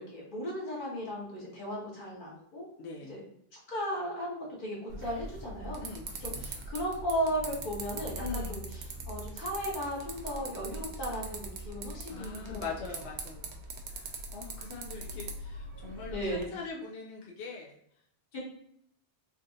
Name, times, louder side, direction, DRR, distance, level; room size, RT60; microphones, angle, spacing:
voice 1, 0.0-2.6 3.1-3.2 3.7-5.8 6.4-8.6 9.1-12.6 16.1-16.5 18.3-18.4, equal, 50° left, -4 dB, 1.3 m, -35 dB
voice 2, 2.8-3.2 5.8-6.5 8.2-8.6 12.1-13.6 13.9-17.8, left 4 dB, 85° left, -2 dB, 0.9 m, -42 dB
sound 1, 4.9-16.5, right 2 dB, 80° right, 0.9 m, -41 dB
3.6 x 2.6 x 2.5 m, 0.72 s
omnidirectional pair, 1.1 m